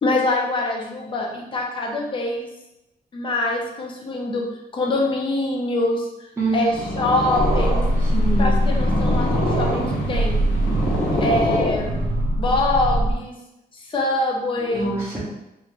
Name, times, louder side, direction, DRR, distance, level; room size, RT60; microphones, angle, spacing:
voice 1, 0.0-2.5 3.1-4.4 4.7-7.9 8.4-10.4 11.2-12.0 12.4-13.3 13.7-14.9, left 2 dB, 35° left, 0 dB, 0.5 m, -24 dB
Purr, 6.5-12.2, left 1 dB, 70° left, 0.8 m, -26 dB
sound 1, 7.3-13.1, right 1 dB, 60° right, 0.4 m, -22 dB
voice 2, 8.0-8.6 14.6-15.2, right 3 dB, 15° right, -8 dB, 0.6 m, -25 dB
2.5 x 2.3 x 3.0 m, 0.93 s
wide cardioid pair, 160°, 16 cm